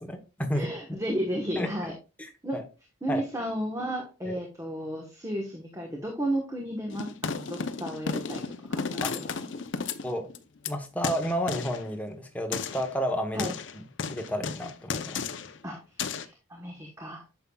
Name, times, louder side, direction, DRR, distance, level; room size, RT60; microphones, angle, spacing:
voice 1, 0.0-0.7 1.6-1.9 2.5-2.6 3.1-3.2 4.3-4.4 9.0-9.1 10.0-10.3 10.7-13.5 14.1-15.2, equal, 5° left, 4 dB, 1.0 m, -31 dB
voice 2, 0.5-1.9 2.4-2.6 3.0-8.4 8.7-9.3 9.8-9.9 13.3-13.5 15.6-17.2, right 1 dB, 15° right, 1 dB, 1.2 m, -33 dB
sound 1, 6.9-10.7 11.0-11.8 12.5-12.9 13.4-15.6 16.0-16.3, left 5 dB, 60° left, 0.6 m, -34 dB
9.0 x 7.1 x 2.3 m, 0.29 s
head